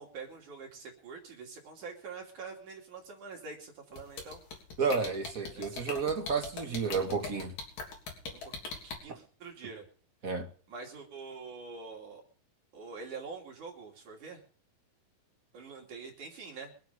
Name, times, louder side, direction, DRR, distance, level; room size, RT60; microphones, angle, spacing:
voice 1, 0.0-4.4 5.5-5.9 8.3-8.5 8.8-9.8 10.7-12.2 12.7-14.4 15.5-16.7, right 4 dB, 60° right, 4.0 m, -45 dB
sound 1, 4.0-8.9, left 4 dB, 70° left, 5.0 m, -39 dB
voice 2, 4.8-7.5 10.2-10.5, right 5 dB, 35° right, 1.4 m, -31 dB
24.0 x 8.2 x 5.3 m
omnidirectional pair, 4.1 m